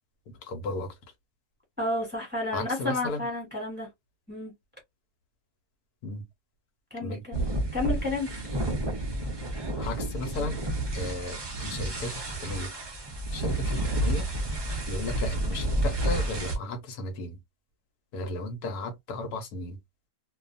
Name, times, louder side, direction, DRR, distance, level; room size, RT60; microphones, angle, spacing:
voice 1, 0.3-1.0 2.5-3.3 6.0-6.2 7.0-7.2 9.8-10.6 10.9-12.7 13.3-14.3 14.8-17.4 18.1-19.8, left 2 dB, 80° left, 1.2 m, -35 dB
voice 2, 1.8-3.9 4.3-4.5 6.9-8.3, left 2 dB, 5° right, 1.2 m, -31 dB
sound 1, 7.3-16.5, right 1 dB, 45° right, 0.3 m, -30 dB
2.6 x 2.3 x 2.5 m
omnidirectional pair, 1.6 m